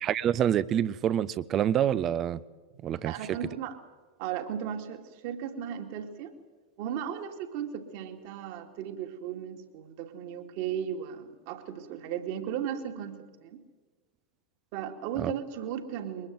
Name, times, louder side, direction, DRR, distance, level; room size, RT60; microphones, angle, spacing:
voice 1, 0.0-2.4 2.8-3.4 15.2-15.3, right 10 dB, 30° right, 18 dB, 0.8 m, -27 dB
voice 2, 2.7-3.8 4.2-6.3 6.8-13.6 14.7-16.3, right 9 dB, 45° right, 6 dB, 2.5 m, -36 dB
23.0 x 21.5 x 7.7 m, 1.3 s
figure-of-eight pair, 90°, 0 cm